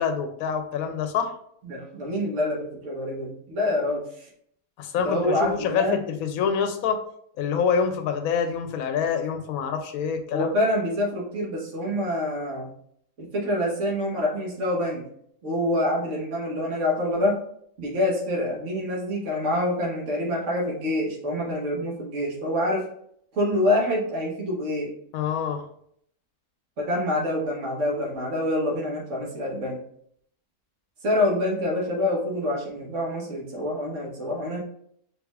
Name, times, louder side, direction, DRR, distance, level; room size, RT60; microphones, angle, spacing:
voice 1, 0.0-1.3 4.8-7.0 7.4-10.5 25.1-25.6, left 6 dB, 75° left, 7 dB, 1.0 m, -26 dB
voice 2, 1.6-4.3 5.0-6.0 10.3-12.7 13.2-15.0 15.4-17.4 17.8-22.9 23.3-24.9 26.8-29.8 31.0-34.7, left 1 dB, 55° right, -3 dB, 1.5 m, -26 dB
4.7 x 3.8 x 2.4 m, 0.67 s
omnidirectional pair, 1.5 m